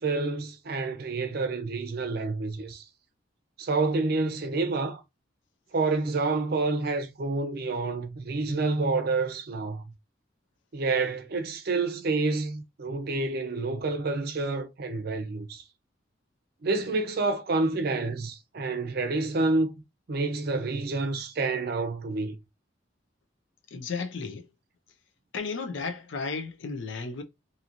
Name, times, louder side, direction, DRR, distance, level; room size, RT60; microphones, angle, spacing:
voice 1, 0.0-2.8 3.6-5.0 5.7-9.8 10.7-15.6 16.6-19.7 20.1-22.4, right 3 dB, 55° right, 0.5 m, -28 dB
voice 2, 23.7-24.5 25.3-27.2, left 4 dB, 85° left, 0.6 m, -34 dB
2.8 x 2.7 x 2.5 m
head